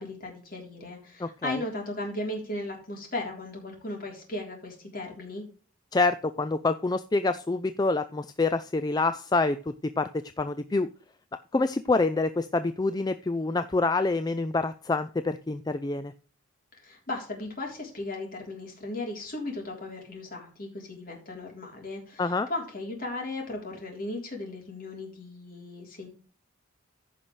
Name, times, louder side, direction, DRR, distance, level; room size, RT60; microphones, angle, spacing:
voice 1, 0.0-5.4 16.7-26.1, left 2 dB, 45° left, 0 dB, 3.5 m, -36 dB
voice 2, 1.2-1.6 5.9-9.6 9.8-10.1 10.4-10.9 11.5-16.1 22.2-22.5, left 3 dB, 20° left, 11 dB, 0.3 m, -26 dB
15.0 x 5.6 x 3.2 m, 0.39 s
head